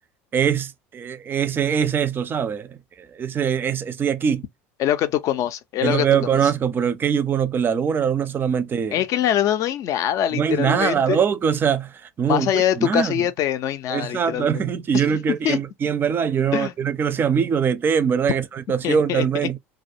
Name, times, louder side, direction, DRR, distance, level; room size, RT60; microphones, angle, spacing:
voice 1, 0.3-2.7 3.2-4.4 5.8-9.0 10.3-11.9 12.2-13.1 13.9-19.6, right 7 dB, 30° right, 0.4 m, -22 dB
voice 2, 4.8-6.5 8.9-11.2 12.3-14.6 14.9-15.0 15.4-15.6 16.5-16.7 18.8-19.5, left 11 dB, 55° left, 0.5 m, -23 dB
2.3 x 2.1 x 2.7 m
supercardioid pair, 95°, 7 cm